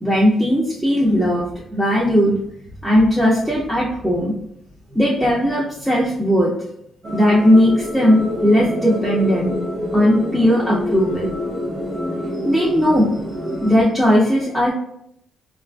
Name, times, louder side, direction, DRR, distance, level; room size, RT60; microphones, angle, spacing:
voice 1, 0.0-1.4 1.7-2.4 2.8-4.3 4.9-6.7 7.1-9.5 9.9-11.3 12.4-13.1 13.6-14.7, equal, 5° right, -6 dB, 0.4 m, -17 dB
sound 1, 7.0-13.8, left 1 dB, 35° right, 0.9 m, -27 dB
4.2 x 2.4 x 2.2 m, 0.73 s
cardioid pair, 160°, 0 cm